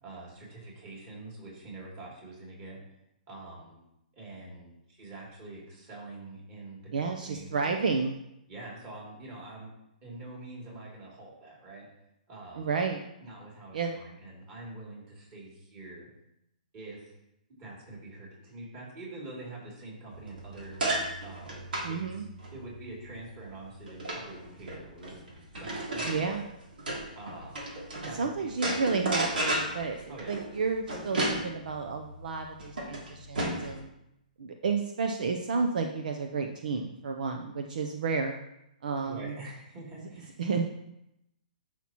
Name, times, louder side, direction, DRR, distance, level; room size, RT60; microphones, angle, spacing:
voice 1, 0.0-2.8 3.3-3.8 4.1-7.8 8.5-9.7 10.0-11.9 12.3-12.7 13.2-16.1 16.7-17.1 17.5-20.8 21.2-22.2 22.5-25.2 25.6-26.5 27.1-27.7 28.0-28.8 30.1-30.4 39.1-40.4, right 2 dB, 25° right, -4 dB, 3.1 m, -45 dB
voice 2, 6.9-8.2 12.6-13.0 13.7-14.0 21.8-22.3 26.0-26.4 28.2-33.9 34.4-38.4 38.8-39.4 40.4-40.7, right 4 dB, 65° right, 4 dB, 0.7 m, -31 dB
sound 1, 20.1-28.2 28.5-33.8, right 1 dB, 90° right, 2.9 m, -34 dB
11.0 x 5.9 x 3.1 m, 0.83 s
hypercardioid pair, 165°, 5 cm